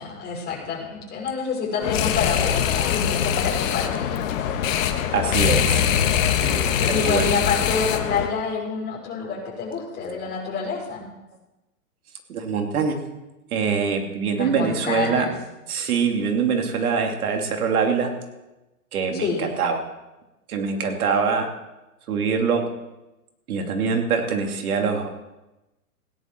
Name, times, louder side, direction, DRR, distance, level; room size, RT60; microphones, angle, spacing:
voice 1, 0.0-4.1 6.9-11.0 14.3-15.3 19.1-19.5, left 5 dB, 20° left, -3 dB, 5.1 m, -27 dB
sound 1, 1.8-8.3, left 9 dB, 55° left, 1.5 m, -23 dB
voice 2, 5.1-5.9 6.4-7.3 12.3-13.0 13.5-15.3 15.7-18.1 18.9-19.8 20.5-21.5 22.1-22.6 23.5-25.1, right 5 dB, 65° right, 4 dB, 2.7 m, -24 dB
16.5 x 10.5 x 4.6 m, 1.0 s
hypercardioid pair, 125°, 46 cm